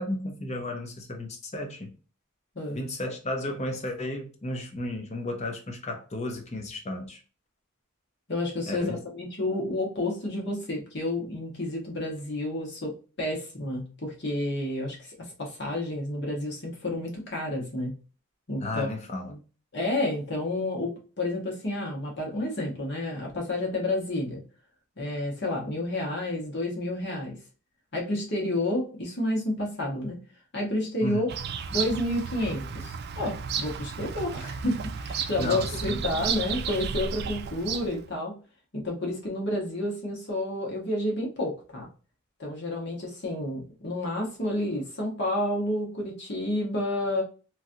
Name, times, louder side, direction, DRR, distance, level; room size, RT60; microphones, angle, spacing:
voice 1, 0.0-1.9 2.7-7.2 8.7-9.0 18.6-19.3 31.0-31.2 35.4-36.2, left 1 dB, 30° left, 0.7 m, -33 dB
voice 2, 2.5-2.9 8.3-17.9 18.5-18.9 19.3-19.4 19.7-24.4 25.0-27.4 27.9-30.2 30.5-31.3 31.7-38.4 38.7-41.8 42.4-47.2, left 1 dB, 55° left, 1.2 m, -30 dB
Bird vocalization bird call bird song, 31.3-38.1, right 6 dB, 50° right, 0.3 m, -33 dB
3.0 x 2.5 x 2.6 m
head